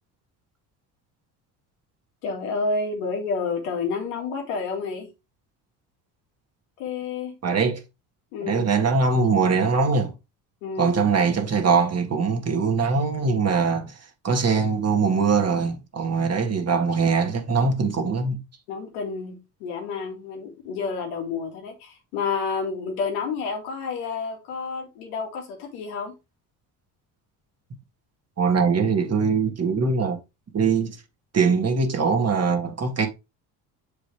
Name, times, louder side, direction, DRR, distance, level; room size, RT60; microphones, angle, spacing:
voice 1, 2.2-5.1 6.8-7.4 8.3-8.7 10.6-11.0 18.7-26.1, left 4 dB, 85° left, 2.2 m, -30 dB
voice 2, 7.4-7.8 8.4-10.1 10.8-14.0 14.2-18.4 28.4-30.2 30.5-31.0 31.3-33.1, right 5 dB, 35° right, 1.8 m, -22 dB
6.9 x 5.1 x 3.3 m
supercardioid pair, 75°, 43 cm